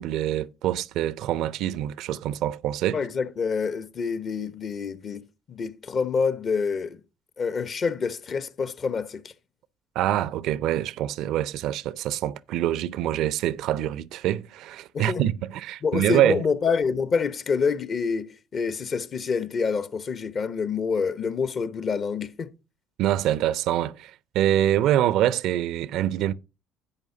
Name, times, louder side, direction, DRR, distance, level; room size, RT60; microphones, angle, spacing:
voice 1, 0.0-3.0 10.0-16.4 23.0-26.3, right 12 dB, 65° right, 0.4 m, -25 dB
voice 2, 2.9-7.0 7.4-9.2 14.9-15.2 15.8-22.5, left 5 dB, 45° left, 0.9 m, -27 dB
11.0 x 8.8 x 2.7 m
hypercardioid pair, 60°, 0 cm